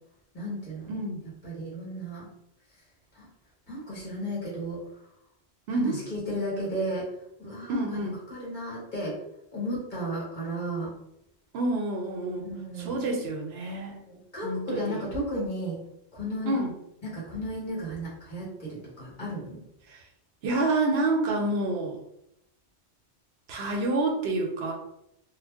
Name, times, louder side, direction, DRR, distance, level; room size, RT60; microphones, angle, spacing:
voice 1, 0.3-1.0 1.4-2.3 3.2-3.3 3.7-4.8 5.7-7.1 7.4-8.0 8.3-9.2 9.5-10.9 12.3-13.1 13.9-15.8 16.1-16.5 17.0-19.6, right 1 dB, 45° left, -6 dB, 1.3 m, -34 dB
voice 2, 0.9-1.2 5.7-6.0 7.7-8.2 11.5-12.5 12.8-14.0 14.4-15.0 16.5-16.7 19.9-20.0 20.4-22.0 23.5-24.7, right 2 dB, 70° right, 1 dB, 0.8 m, -28 dB
2.5 x 2.1 x 3.4 m, 0.80 s
omnidirectional pair, 1.1 m